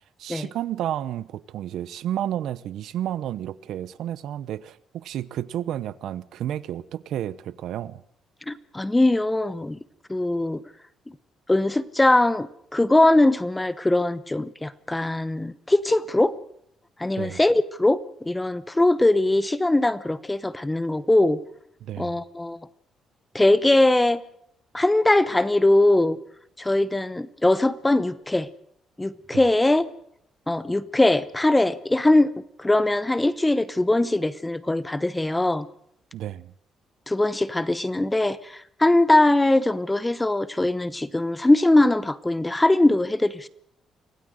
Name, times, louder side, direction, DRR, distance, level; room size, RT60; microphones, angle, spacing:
voice 1, 0.2-8.0 17.2-17.4 21.8-22.2 29.3-29.4 36.1-36.5, right 11 dB, 70° right, 0.9 m, -31 dB
voice 2, 8.5-9.8 10.1-10.6 11.5-16.3 17.0-21.4 22.0-22.6 23.3-24.2 24.7-26.2 26.6-28.5 29.0-29.9 30.5-32.3 32.6-35.7 37.1-43.5, left 2 dB, 10° left, 0.8 m, -21 dB
25.0 x 16.5 x 6.5 m
cardioid pair, 160°, 0 cm